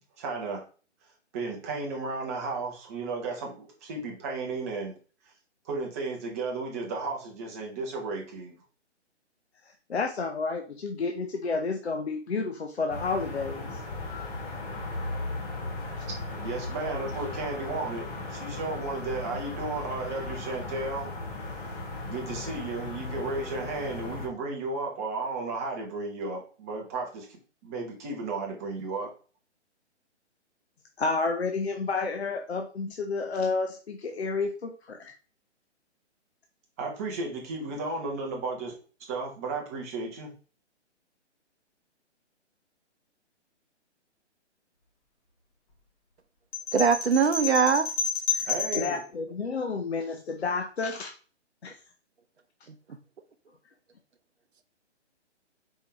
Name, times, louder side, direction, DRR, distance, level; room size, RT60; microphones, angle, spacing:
voice 1, 0.2-0.6 1.3-4.9 5.6-8.6 16.4-21.1 21.5-21.7 22.0-29.1 36.8-38.7 39.1-40.3 48.5-49.0, right 3 dB, 15° right, 0.7 m, -34 dB
voice 2, 9.9-13.7 31.0-35.1 48.3-48.5 48.7-51.1 51.6-51.8, left 4 dB, 65° left, 0.7 m, -30 dB
sound 1, 12.9-24.3, left 2 dB, 15° left, 0.8 m, -36 dB
sound 2, 46.5-49.0, left 6 dB, 30° left, 1.3 m, -30 dB
voice 3, 46.7-47.9 49.5-49.6 52.7-52.8, right 6 dB, 65° right, 0.7 m, -22 dB
4.5 x 3.3 x 3.2 m
figure-of-eight pair, 130°, 35 cm